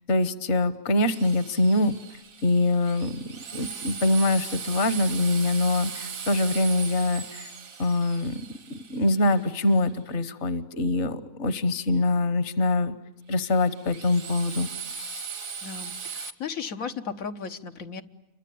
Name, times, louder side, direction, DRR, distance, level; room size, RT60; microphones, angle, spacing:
voice 1, 0.1-1.9 2.4-7.5 7.8-12.9 13.3-14.7, left 2 dB, 60° left, 13 dB, 1.5 m, -24 dB
Drill, 1.0-9.9 13.3-16.3, right 6 dB, 80° right, 1.8 m, -39 dB
voice 2, 15.6-18.0, left 6 dB, 90° left, 6 dB, 1.7 m, -35 dB
28.5 x 24.0 x 8.5 m, 0.91 s
omnidirectional pair, 1.4 m